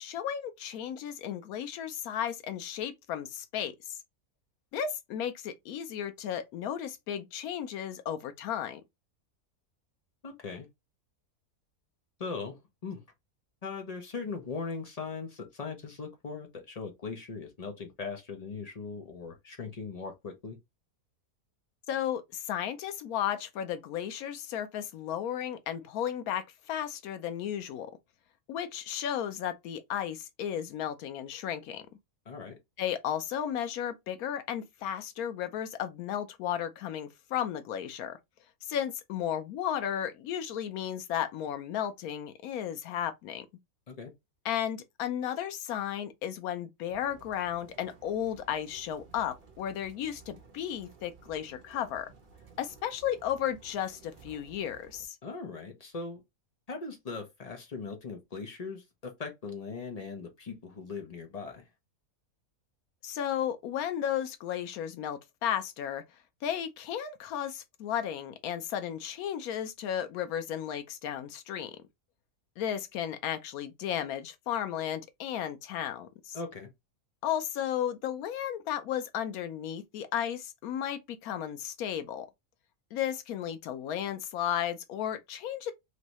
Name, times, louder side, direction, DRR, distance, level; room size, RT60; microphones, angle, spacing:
voice 1, 0.0-4.0 4.7-8.8 21.9-27.9 28.5-31.8 32.8-38.2 38.7-43.5 44.4-52.1 52.6-55.2 63.0-66.0 66.4-71.7 72.6-76.4 77.2-82.3 82.9-85.7, left 10 dB, 90° left, 1.1 m, -34 dB
voice 2, 10.2-10.7 12.2-13.0 13.6-20.6 32.3-32.6 43.9-44.1 55.2-56.2 56.7-61.7 75.3-75.4 76.3-76.7, left 4 dB, 45° left, 0.5 m, -39 dB
sound 1, 46.9-55.0, right 5 dB, 45° right, 0.8 m, -56 dB
3.2 x 2.6 x 2.9 m
omnidirectional pair, 1.5 m